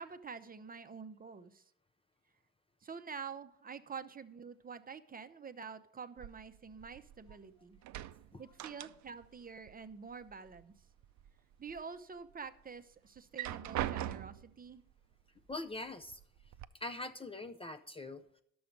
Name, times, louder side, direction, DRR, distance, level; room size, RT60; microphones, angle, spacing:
voice 1, 0.0-1.6 2.8-7.8 8.4-10.7 11.6-14.8, right 5 dB, 30° right, 10 dB, 0.7 m, -47 dB
sound 1, 6.2-7.4 7.7-9.3 9.6-10.6 11.0-11.8 12.3-12.4 13.2-14.6 15.5-15.6 16.0-16.6, right 13 dB, 70° right, 0.5 m, -41 dB
voice 2, 15.5-16.2 16.8-18.4, left 2 dB, 20° left, 7 dB, 0.5 m, -43 dB
11.0 x 7.0 x 5.2 m, 0.69 s
cardioid pair, 90°, 30 cm